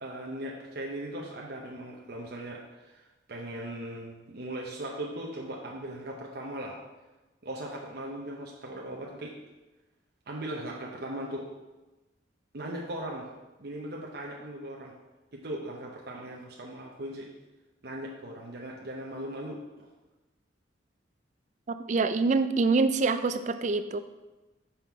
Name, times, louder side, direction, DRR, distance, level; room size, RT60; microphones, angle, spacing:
voice 1, 0.0-6.8 7.4-9.4 10.3-11.5 12.5-13.3 13.6-14.9 15.3-17.3 17.8-19.6, right 1 dB, 60° right, -2 dB, 0.8 m, -38 dB
voice 2, 21.7-24.0, right 3 dB, 40° right, 11 dB, 0.4 m, -25 dB
5.9 x 5.5 x 4.6 m, 1.1 s
head